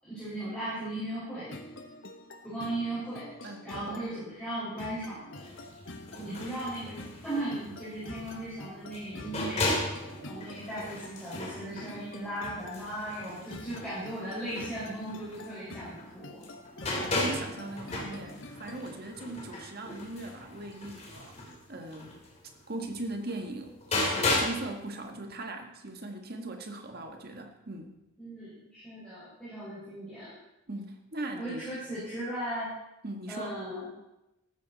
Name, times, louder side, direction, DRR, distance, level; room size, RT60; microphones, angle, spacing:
voice 1, 0.0-1.5 2.4-3.3 3.6-5.5 6.1-9.7 10.2-16.4 28.2-30.3 31.4-32.7 33.3-33.9, right 1 dB, 5° left, -12 dB, 5.3 m, -37 dB
sound 1, 1.5-18.9, left 2 dB, 60° left, 1.3 m, -47 dB
voice 2, 3.4-4.0 17.0-22.2 22.7-27.9 30.7-31.7 33.0-33.6, right 2 dB, 45° right, 4 dB, 1.7 m, -39 dB
sound 2, 5.3-16.1 16.4-24.6 25.0-25.1, left 2 dB, 30° left, 3.1 m, -36 dB
14.5 x 13.0 x 4.2 m, 0.93 s
head